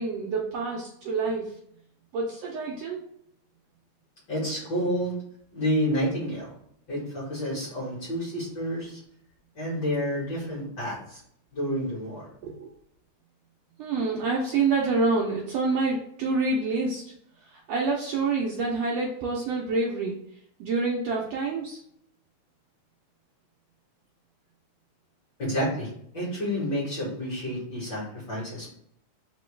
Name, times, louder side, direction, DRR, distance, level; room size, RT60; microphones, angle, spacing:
voice 1, 0.0-1.6 2.1-3.0 12.4-12.7 13.8-17.1 17.4-20.2 20.6-21.8, right 3 dB, 75° right, -2 dB, 1.6 m, -27 dB
voice 2, 4.3-5.2 5.5-6.5 6.9-9.0 9.5-11.2 11.5-12.3 25.4-28.7, equal, 40° left, -6 dB, 1.7 m, -29 dB
4.6 x 3.0 x 3.2 m, 0.70 s
omnidirectional pair, 3.5 m